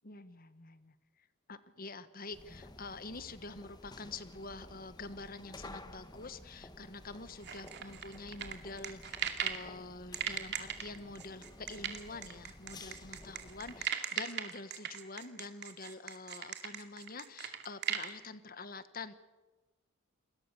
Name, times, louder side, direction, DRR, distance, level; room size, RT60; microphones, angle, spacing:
voice 1, 0.0-19.1, left 3 dB, 45° left, 12 dB, 1.4 m, -47 dB
sound 1, 2.3-13.9, left 1 dB, 20° left, 1.4 m, -53 dB
sound 2, 7.4-9.7 10.1-18.1, right 9 dB, 55° right, 2.5 m, -38 dB
29.0 x 21.5 x 7.0 m, 1.1 s
head